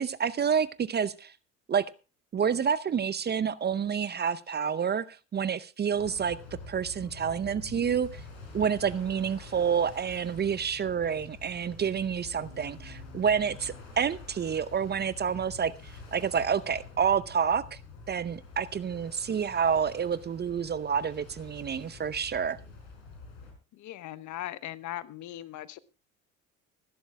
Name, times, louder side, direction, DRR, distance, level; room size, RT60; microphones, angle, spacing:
voice 1, 0.0-1.3 1.7-1.9 2.3-6.4 6.7-8.2 8.5-17.8 18.1-22.6, right 7 dB, 25° right, 0.6 m, -28 dB
sound 1, 5.9-23.5, left 3 dB, 75° left, 5.3 m, -47 dB
voice 2, 23.7-25.8, left 13 dB, 50° left, 0.9 m, -39 dB
24.0 x 11.5 x 2.2 m
hypercardioid pair, 60°, 38 cm